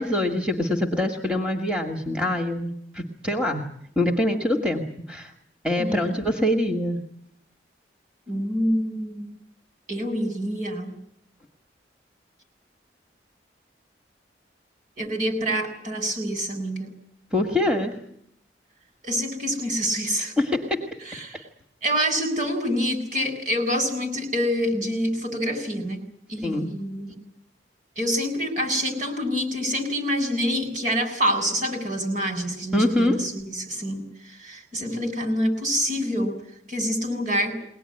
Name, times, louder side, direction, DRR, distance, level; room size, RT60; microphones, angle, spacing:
voice 1, 0.0-3.7 4.0-5.3 5.6-7.0 17.3-18.0 20.4-20.9 26.4-26.7 32.7-33.2, left 1 dB, 5° right, 2 dB, 1.9 m, -24 dB
voice 2, 5.8-6.1 8.3-9.3 9.9-10.9 15.0-16.9 19.0-20.3 21.1-21.4 21.8-26.0 26.3-27.1 28.0-36.3 36.7-37.5, equal, 45° right, 5 dB, 7.6 m, -26 dB
22.5 x 19.5 x 9.9 m, 0.71 s
head